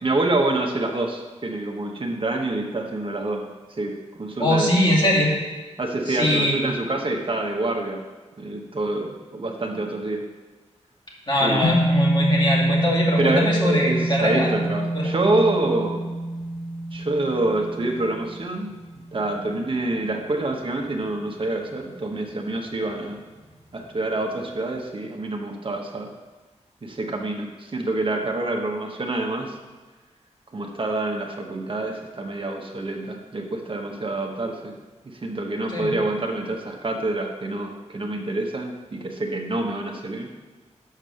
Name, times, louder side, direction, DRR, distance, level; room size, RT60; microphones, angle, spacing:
voice 1, 0.0-4.7 5.8-8.0 8.4-10.2 11.4-11.7 13.2-16.1 16.9-18.7 19.1-23.2 23.7-26.1 26.8-29.6 30.5-34.8 35.1-40.3, right 2 dB, 45° right, 1 dB, 1.0 m, -27 dB
voice 2, 4.4-5.3 6.1-6.6 11.3-14.5 14.9-15.1 35.7-35.9, left 1 dB, 40° left, -4 dB, 2.2 m, -22 dB
sound 1, 11.6-20.1, right 1 dB, 55° left, 2.4 m, -25 dB
6.6 x 5.3 x 6.4 m, 1.3 s
cardioid pair, 65°, 12 cm